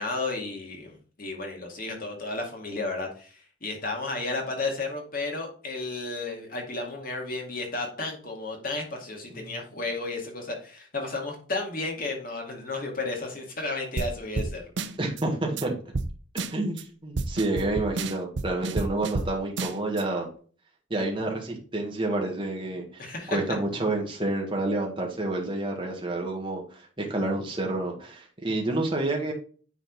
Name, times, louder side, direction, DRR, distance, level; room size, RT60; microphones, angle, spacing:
voice 1, 0.0-14.6 23.0-23.4, left 3 dB, 45° left, 1 dB, 2.2 m, -33 dB
sound 1, 14.0-14.1 14.4-14.5 14.8-15.2 15.6-15.7 15.9-16.1 16.4-16.8 17.2-19.3 19.6-20.0, right 3 dB, 60° right, 0.6 m, -30 dB
voice 2, 15.0-15.8 16.5-20.3 20.9-23.0 23.3-29.3, right 2 dB, 25° right, -1 dB, 1.8 m, -29 dB
10.0 x 4.1 x 3.9 m, 0.41 s
head